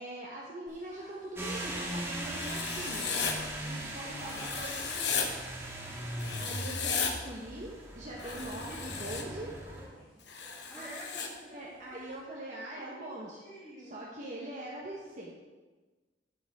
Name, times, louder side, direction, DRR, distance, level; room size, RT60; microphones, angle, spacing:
voice 1, 0.0-5.3 6.4-9.5 10.5-10.9 11.5-13.4 13.8-15.3, right 1 dB, 45° right, -4 dB, 1.2 m, -43 dB
sound 1, 0.7-12.2, equal, 55° left, 3.0 m, -56 dB
sound 2, 1.4-9.9, right 1 dB, 15° right, 1.5 m, -39 dB
Writing, 2.3-3.3 4.3-5.3 6.2-7.1 8.2-9.2 10.3-11.3, left 6 dB, 75° left, 1.0 m, -35 dB
voice 2, 4.2-4.6 10.7-11.6 12.8-14.0, equal, 10° left, -9 dB, 1.8 m, -48 dB
10.5 x 8.6 x 3.6 m, 1.3 s
head